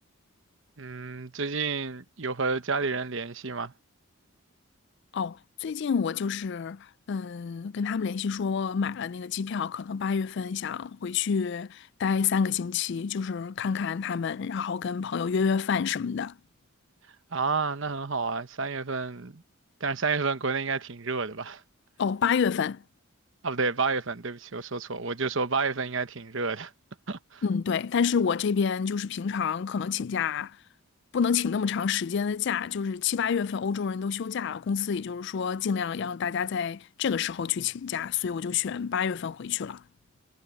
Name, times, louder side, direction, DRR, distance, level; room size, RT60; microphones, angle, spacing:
voice 1, 0.8-3.7 17.3-19.4 19.8-21.6 23.4-26.7 27.1-27.4, right 4 dB, 60° right, 1.0 m, -30 dB
voice 2, 5.1-16.3 22.0-22.8 27.4-30.6 31.1-39.8, left 6 dB, 50° left, 0.3 m, -28 dB
head